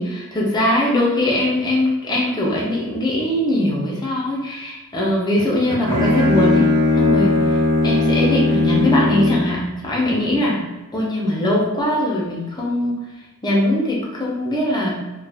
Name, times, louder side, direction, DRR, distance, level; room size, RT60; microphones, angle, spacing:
voice 1, 0.0-10.6 10.9-13.1 13.4-14.9, left 1 dB, 20° left, -4 dB, 0.6 m, -21 dB
Bowed string instrument, 5.4-9.5, left 2 dB, 75° right, 0.9 m, -18 dB
2.5 x 2.3 x 3.3 m, 1.1 s
head